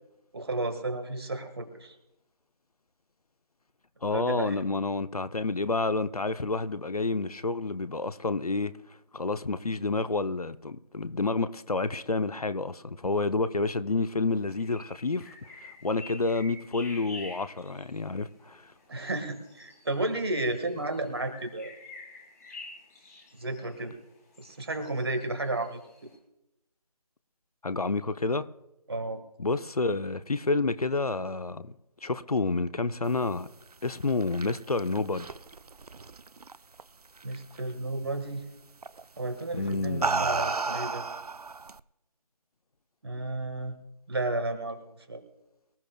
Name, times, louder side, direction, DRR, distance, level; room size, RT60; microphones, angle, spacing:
voice 1, 0.3-1.9 4.1-4.6 18.9-21.7 23.3-24.0 24.4-25.8 28.9-29.2 37.2-38.5 39.2-41.0 43.0-43.7 44.1-44.8 45.1-45.2, right 2 dB, 40° right, 1.5 m, -32 dB
voice 2, 4.0-8.7 9.1-15.3 15.6-18.7 27.6-28.5 29.4-31.7 32.0-33.5 33.8-35.3 39.5-40.1, left 3 dB, 65° left, 0.7 m, -29 dB
sound 1, 14.5-26.1, left 2 dB, 25° left, 2.4 m, -49 dB
sound 2, 33.9-36.8 37.2-37.6 38.8-39.0 39.7-41.8, right 4 dB, 70° right, 0.5 m, -32 dB
24.0 x 14.0 x 2.2 m
figure-of-eight pair, 160°, 20 cm